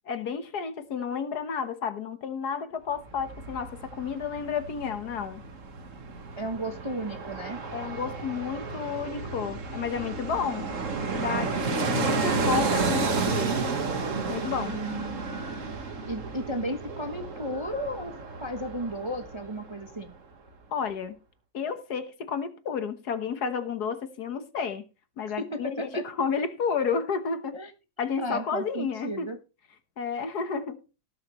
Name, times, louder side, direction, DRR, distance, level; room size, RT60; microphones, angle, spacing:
voice 1, 0.1-5.4 7.7-10.7 11.1-13.6 14.3-14.8 20.7-21.2 21.5-24.8 25.2-25.8 26.0-27.6 28.0-29.3 30.0-30.8, left 6 dB, 60° left, 1.7 m, -31 dB
Fixed-wing aircraft airplane, 2.9-19.8 20.1-20.2, right 4 dB, 45° right, 1.7 m, -32 dB
voice 2, 6.4-7.6 14.6-15.5 16.1-18.1 18.4-20.1 25.3-26.0 27.5-27.7 28.2-29.4, right 1 dB, 20° right, 0.8 m, -34 dB
18.5 x 7.2 x 3.1 m
omnidirectional pair, 1.9 m